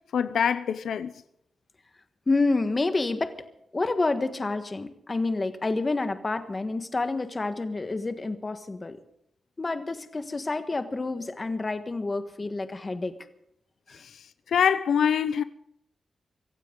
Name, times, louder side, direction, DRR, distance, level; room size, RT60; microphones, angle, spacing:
voice 1, 0.1-1.1 14.5-15.4, left 7 dB, 90° left, 0.6 m, -24 dB
voice 2, 2.3-3.3 3.7-9.0 9.6-13.1 13.9-14.0, left 3 dB, 25° left, 1.5 m, -28 dB
24.5 x 15.0 x 3.9 m
wide cardioid pair, 145°, 0 cm